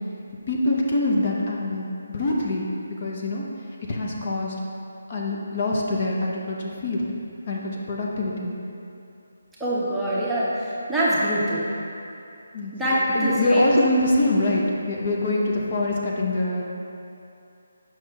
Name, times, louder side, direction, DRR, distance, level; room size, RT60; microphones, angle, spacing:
voice 1, 0.5-2.7 3.0-3.5 3.9-4.5 5.1-6.6 6.8-7.1 7.5-7.6 7.9-8.5 12.5-12.7 13.1-16.6, left 2 dB, 40° left, -2 dB, 0.9 m, -24 dB
voice 2, 9.6-11.6 12.7-13.8, right 1 dB, 5° right, -10 dB, 0.8 m, -24 dB
7.1 x 5.7 x 3.5 m, 2.6 s
figure-of-eight pair, 165°, 0 cm